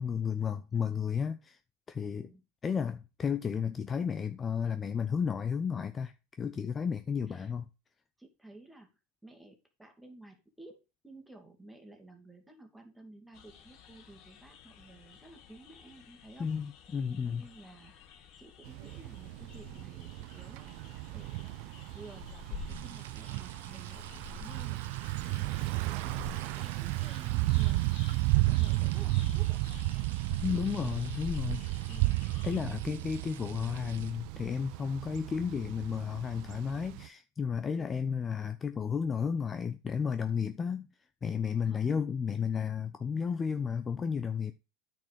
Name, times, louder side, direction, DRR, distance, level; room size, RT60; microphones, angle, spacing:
voice 1, 0.0-1.6 1.9-2.3 2.6-7.7 16.4-17.5 30.4-31.6 32.4-40.9 41.2-44.5, left 6 dB, 25° left, 0.7 m, -33 dB
voice 2, 8.2-8.9 9.2-16.5 17.2-18.0 18.4-24.8 25.2-27.9 28.3-29.6 30.5-31.0 31.9-32.1 37.8-38.1 41.7-42.0 43.3-43.4, right 2 dB, 5° right, 2.6 m, -53 dB
sound 1, 13.3-32.6, left 6 dB, 55° left, 1.8 m, -49 dB
Thunder / Bicycle, 18.7-37.1, right 21 dB, 60° right, 0.4 m, -33 dB
sound 2, 22.7-34.1, right 10 dB, 80° right, 1.1 m, -52 dB
9.2 x 5.3 x 5.2 m
hypercardioid pair, 95°, 0 cm